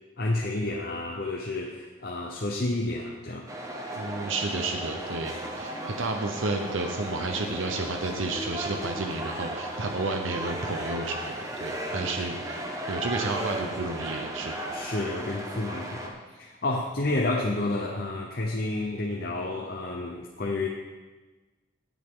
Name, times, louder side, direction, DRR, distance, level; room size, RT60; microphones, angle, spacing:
voice 1, 0.2-3.5 11.9-12.1 14.7-20.7, left 2 dB, 50° left, 0 dB, 0.9 m, -30 dB
sound 1, 3.5-16.1, right 1 dB, 15° right, 1.1 m, -35 dB
voice 2, 3.9-14.6, right 3 dB, 80° right, 4 dB, 0.9 m, -31 dB
18.0 x 7.3 x 3.8 m, 1.3 s
head